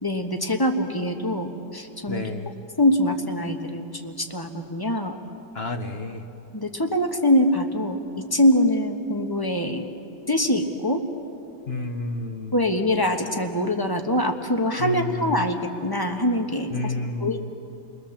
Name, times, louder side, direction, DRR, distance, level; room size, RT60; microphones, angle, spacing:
voice 1, 0.0-2.2 2.8-5.2 6.5-9.8 10.3-11.0 12.5-16.7 17.2-17.4, left 1 dB, 15° left, 4 dB, 1.2 m, -23 dB
voice 2, 2.1-2.6 5.5-6.2 11.7-12.5 14.8-15.4 16.7-17.4, left 2 dB, 40° left, 6 dB, 1.1 m, -30 dB
30.0 x 21.0 x 7.3 m, 2.8 s
omnidirectional pair, 2.1 m